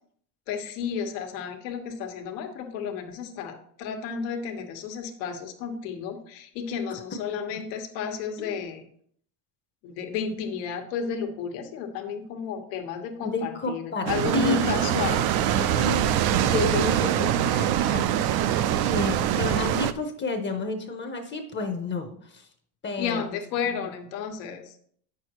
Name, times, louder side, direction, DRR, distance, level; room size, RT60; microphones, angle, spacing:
voice 1, 0.5-8.8 9.8-15.3 15.5-16.0 23.0-24.8, left 6 dB, 90° left, 4 dB, 1.3 m, -32 dB
voice 2, 13.2-15.0 15.7-22.5 22.8-23.2 23.7-23.8, left 3 dB, 25° left, 5 dB, 0.7 m, -31 dB
sound 1, 14.1-19.9, right 11 dB, 55° right, 0.5 m, -24 dB
8.7 x 6.3 x 2.9 m, 0.63 s
cardioid pair, 145°, 47 cm